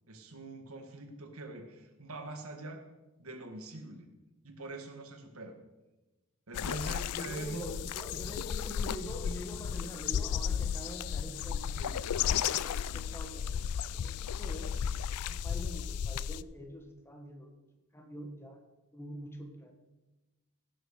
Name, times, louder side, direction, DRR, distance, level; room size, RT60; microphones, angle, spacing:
voice 1, 0.1-2.8 3.2-4.1 4.4-5.6 6.5-8.0 11.8-12.0, right 2 dB, 70° right, 5 dB, 1.7 m, -43 dB
sound 1, 6.5-16.4, left 8 dB, 90° left, 0.4 m, -34 dB
voice 2, 7.2-11.8 12.3-13.7 14.0-17.5 17.9-18.6 18.9-19.7, equal, 10° left, 4 dB, 1.4 m, -45 dB
16.5 x 6.4 x 6.5 m, 1.1 s
head